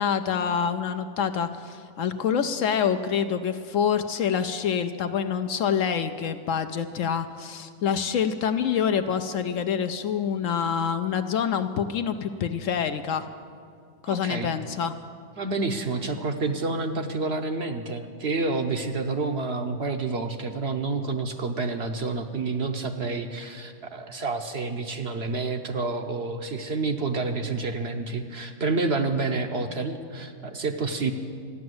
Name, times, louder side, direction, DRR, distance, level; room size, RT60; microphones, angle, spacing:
voice 1, 0.0-13.3 14.0-14.9, left 7 dB, 70° left, 9 dB, 0.9 m, -26 dB
voice 2, 14.1-14.5 15.4-31.1, right 3 dB, 55° right, 5 dB, 0.8 m, -29 dB
14.0 x 10.5 x 7.8 m, 2.3 s
omnidirectional pair, 1.6 m